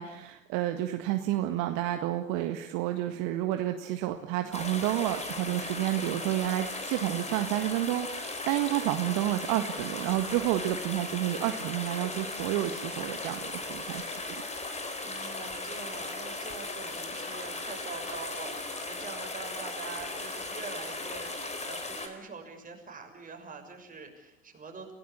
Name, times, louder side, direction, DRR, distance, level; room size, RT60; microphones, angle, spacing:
voice 1, 0.0-14.1, right 14 dB, 50° right, 7 dB, 1.8 m, -30 dB
sound 1, 4.5-22.1, left 2 dB, 15° left, 4.4 m, -37 dB
voice 2, 15.0-24.9, right 4 dB, 20° right, 3 dB, 6.5 m, -44 dB
28.5 x 17.5 x 8.7 m, 0.83 s
figure-of-eight pair, 80°, 40 cm